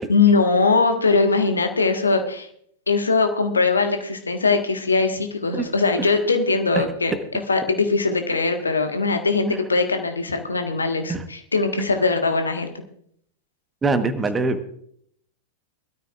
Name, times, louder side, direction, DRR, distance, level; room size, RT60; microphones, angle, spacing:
voice 1, 0.1-2.5 2.9-7.1 7.5-12.7, left 4 dB, 75° left, 6 dB, 1.5 m, -21 dB
voice 2, 13.8-14.8, right 3 dB, 15° right, 9 dB, 1.2 m, -23 dB
22.0 x 13.0 x 2.5 m, 0.67 s
figure-of-eight pair, 90°, 0 cm